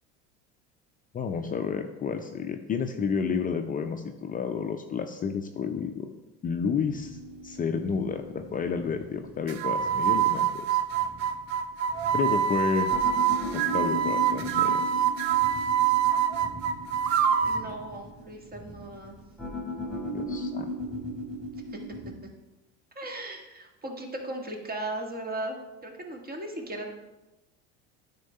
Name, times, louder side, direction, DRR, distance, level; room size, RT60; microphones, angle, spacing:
voice 1, 1.1-6.1 6.4-10.8 12.1-12.9 13.5-14.8 20.1-20.7, left 6 dB, 30° left, 6 dB, 0.5 m, -31 dB
sound 1, 6.8-22.1, equal, ahead, 2.5 m, -38 dB
sound 2, 9.5-17.7, right 8 dB, 85° right, 0.6 m, -25 dB
voice 2, 17.4-19.2 21.5-21.8 23.0-26.9, right 1 dB, 30° right, 1 dB, 1.8 m, -37 dB
9.4 x 3.8 x 5.5 m, 1.1 s
supercardioid pair, 95°, 30 cm